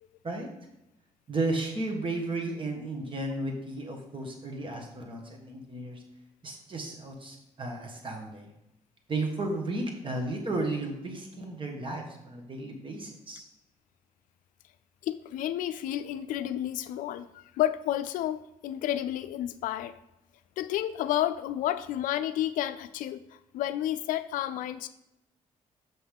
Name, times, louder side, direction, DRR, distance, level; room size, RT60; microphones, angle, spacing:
voice 1, 1.3-6.0 6.4-8.4 9.1-13.4, right 2 dB, 40° right, 2 dB, 1.5 m, -34 dB
voice 2, 15.0-19.9 20.6-23.2 23.5-24.9, left 12 dB, 85° left, 12 dB, 0.4 m, -31 dB
6.1 x 5.6 x 3.6 m, 0.88 s
cardioid pair, 80°, 13 cm